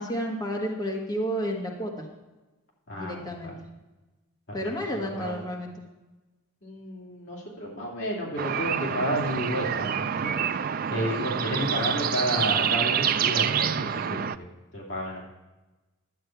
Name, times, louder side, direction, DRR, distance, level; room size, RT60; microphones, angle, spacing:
voice 1, 0.0-1.9 3.0-3.6 4.5-5.7, equal, 20° left, -2 dB, 1.5 m, -31 dB
voice 2, 2.9-3.6 4.5-5.4 6.6-10.3 10.9-15.3, equal, 55° left, -3 dB, 2.7 m, -32 dB
sound 1, 8.4-14.4, right 8 dB, 45° right, 0.3 m, -27 dB
12.0 x 8.6 x 4.5 m, 1.1 s
head